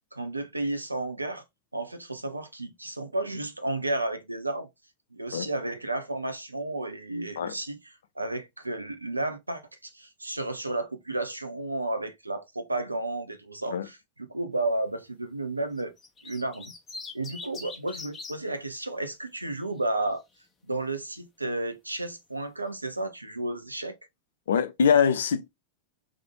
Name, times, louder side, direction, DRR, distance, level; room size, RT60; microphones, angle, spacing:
voice 1, 0.1-1.4 1.7-4.7 5.1-15.9 16.2-16.7 17.1-20.2 20.7-24.0, right 2 dB, 85° right, 0.7 m, -32 dB
sound 1, 15.8-18.4 19.6-20.1, left 3 dB, 20° left, 1.3 m, -41 dB
voice 2, 24.5-25.5, left 7 dB, 65° left, 0.5 m, -23 dB
3.6 x 3.3 x 3.7 m
figure-of-eight pair, 90°, 0 cm